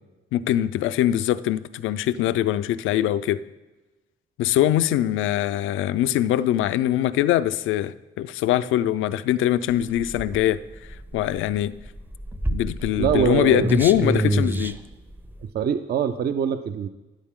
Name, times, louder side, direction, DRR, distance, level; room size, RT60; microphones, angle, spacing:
voice 1, 0.3-3.4 4.4-10.6 11.1-11.7 12.5-14.8, left 12 dB, 85° left, 0.4 m, -22 dB
sound 1, 9.7-15.5, right 1 dB, 10° right, 0.6 m, -27 dB
voice 2, 13.0-13.7 15.5-16.9, right 8 dB, 55° right, 0.5 m, -23 dB
13.0 x 10.5 x 3.7 m
cardioid pair, 90°, 20 cm